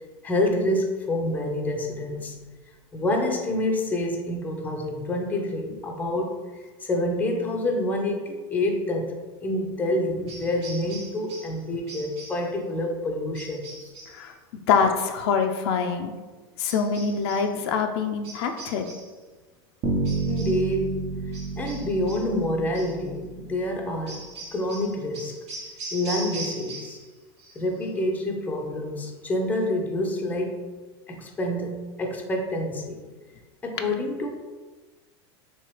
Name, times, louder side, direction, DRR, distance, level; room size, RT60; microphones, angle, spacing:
voice 1, 0.2-2.4 2.9-9.1 9.4-13.9 20.2-21.0 21.6-24.2 24.5-25.4 25.9-27.0 27.6-30.6 31.1-33.0 33.6-34.3, left 1 dB, 10° left, 1 dB, 0.5 m, -27 dB
sound 1, 10.3-11.6 11.9-12.5 13.3-14.2 16.6-17.5 18.2-19.2 20.0-20.7 21.3-22.3 22.7-23.0 24.1-27.1 27.4-27.9, right 3 dB, 75° right, 1.4 m, -40 dB
voice 2, 14.1-16.1 16.6-18.9, left 5 dB, 70° left, 5 dB, 0.4 m, -25 dB
Bass guitar, 19.8-23.9, right 3 dB, 45° right, 0.8 m, -30 dB
3.2 x 2.9 x 3.1 m, 1.3 s
supercardioid pair, 120°, 14 cm